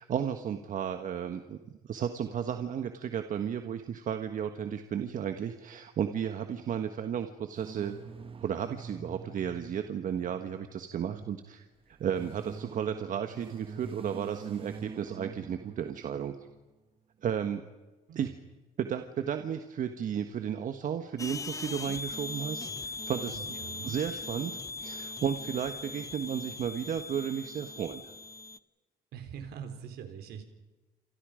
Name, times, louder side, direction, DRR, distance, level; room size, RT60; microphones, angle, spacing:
voice 1, 0.0-1.6 1.8-8.0 8.4-16.4 17.2-17.6 18.1-18.3 18.8-23.6 23.8-28.1, right 8 dB, 50° right, 7 dB, 1.5 m, -34 dB
sound 1, 7.5-10.9 11.8-16.6, right 5 dB, 30° right, 1.5 m, -46 dB
sound 2, 21.2-28.6, left 3 dB, 20° left, 0.9 m, -40 dB
voice 2, 23.3-23.9 29.1-30.4, right 8 dB, 70° right, 7 dB, 4.0 m, -43 dB
29.0 x 27.0 x 5.1 m, 1.2 s
cardioid pair, 110°, 17 cm